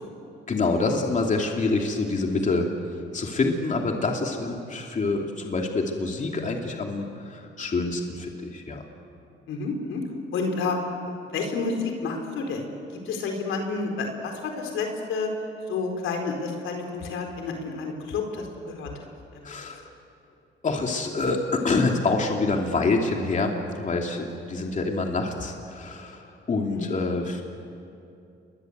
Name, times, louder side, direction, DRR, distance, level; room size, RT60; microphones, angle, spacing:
voice 1, 0.5-8.8 19.4-19.9 20.6-27.4, left 3 dB, 40° left, 1 dB, 2.8 m, -26 dB
voice 2, 9.5-10.0 10.3-10.8 11.3-12.7 13.0-15.3 15.7-18.9 19.4-19.5 26.7-26.9, left 4 dB, 85° left, 3 dB, 4.4 m, -30 dB
29.0 x 22.5 x 8.1 m, 2.6 s
cardioid pair, 90°, 20 cm